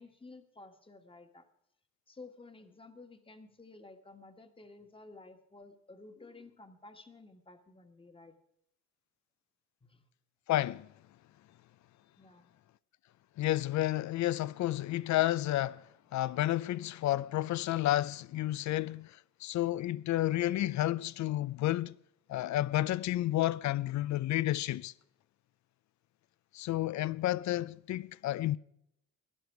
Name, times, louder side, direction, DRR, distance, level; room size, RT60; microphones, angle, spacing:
voice 1, 0.0-1.5 2.1-8.4 9.8-10.1 12.2-12.6, left 3 dB, 15° left, 1.5 m, -53 dB
voice 2, 10.5-10.9 13.4-15.8 16.1-21.9 22.3-24.9 26.5-28.6, left 14 dB, 70° left, 0.6 m, -31 dB
17.0 x 11.5 x 4.7 m
cardioid pair, 90°, 30 cm